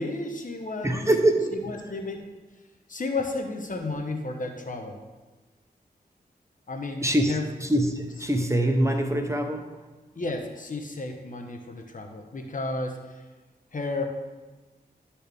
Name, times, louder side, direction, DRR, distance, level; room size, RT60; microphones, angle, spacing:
voice 1, 0.0-1.1 1.5-2.3 2.9-5.0 6.7-7.4 10.1-13.0 13.7-14.1, left 2 dB, 55° left, 4 dB, 1.0 m, -32 dB
voice 2, 0.8-1.8 7.0-9.7, right 1 dB, 15° right, 4 dB, 0.9 m, -24 dB
12.0 x 4.3 x 3.4 m, 1.3 s
cardioid pair, 45°, 17 cm